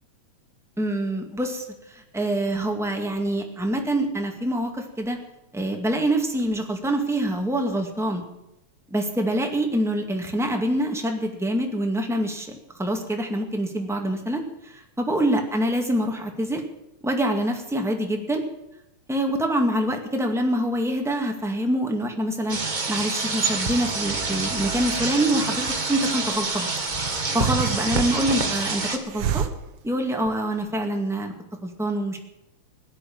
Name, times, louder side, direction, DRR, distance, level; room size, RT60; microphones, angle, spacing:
voice 1, 0.8-5.2 5.5-8.2 8.9-16.6 17.0-18.4 19.1-22.6 22.9-26.7 27.3-29.5 29.8-31.3 31.6-32.2, right 1 dB, ahead, 2 dB, 1.4 m, -25 dB
sound 1, 22.5-29.0, right 3 dB, 40° right, 0.6 m, -26 dB
Hiss, 25.3-30.8, right 8 dB, 65° right, 1.2 m, -35 dB
17.0 x 10.0 x 7.2 m, 0.91 s
omnidirectional pair, 3.3 m